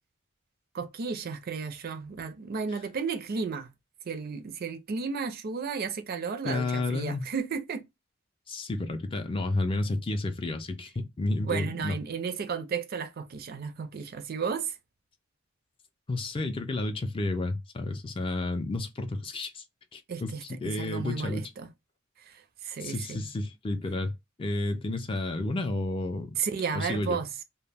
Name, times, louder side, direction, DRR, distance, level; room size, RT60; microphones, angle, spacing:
voice 1, 0.7-3.7 4.0-7.8 11.4-14.8 20.1-21.7 22.2-23.3 26.4-27.3, right 5 dB, 50° right, 0.4 m, -33 dB
voice 2, 6.4-7.3 8.5-12.0 16.1-19.6 19.9-21.5 22.8-24.1 24.4-26.4 26.7-27.2, left 2 dB, 25° left, 0.3 m, -31 dB
2.1 x 2.1 x 3.2 m
head